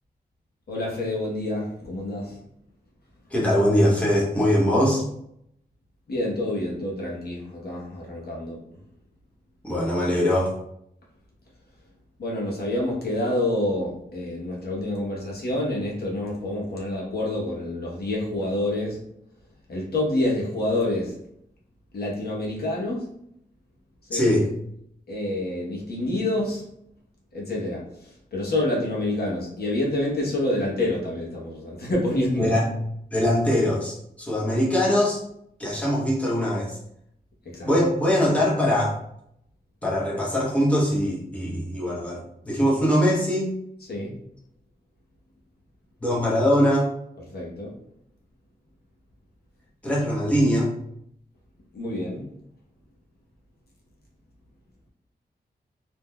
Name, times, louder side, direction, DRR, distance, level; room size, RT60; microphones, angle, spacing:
voice 1, 0.7-2.4 6.1-8.6 12.2-19.0 19.7-21.2 21.9-23.1 24.1-24.3 25.1-26.6 27.3-32.5 37.4-37.7 43.9-44.1 47.3-47.7 51.7-52.3, left 1 dB, 65° left, -4 dB, 1.0 m, -27 dB
voice 2, 3.3-5.0 9.6-10.5 24.1-24.5 32.4-32.7 33.1-35.2 35.6-36.8 37.6-39.0 39.8-43.5 46.0-46.9 49.8-50.7, equal, 10° left, -6 dB, 0.9 m, -22 dB
3.6 x 2.8 x 2.2 m, 0.72 s
wide cardioid pair, 120°, 17 cm